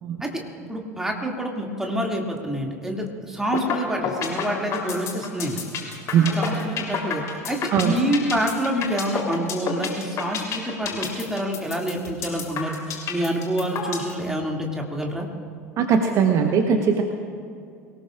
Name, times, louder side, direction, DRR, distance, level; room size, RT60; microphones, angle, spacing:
voice 1, 0.7-5.6 6.4-15.3, right 1 dB, 5° right, 0 dB, 2.5 m, -27 dB
sound 1, 3.5-3.8 4.0-14.1, left 8 dB, 35° left, 3.5 m, -28 dB
voice 2, 15.8-17.0, right 7 dB, 40° right, 5 dB, 1.1 m, -19 dB
24.0 x 18.5 x 2.5 m, 2.4 s
figure-of-eight pair, 75°, 9 cm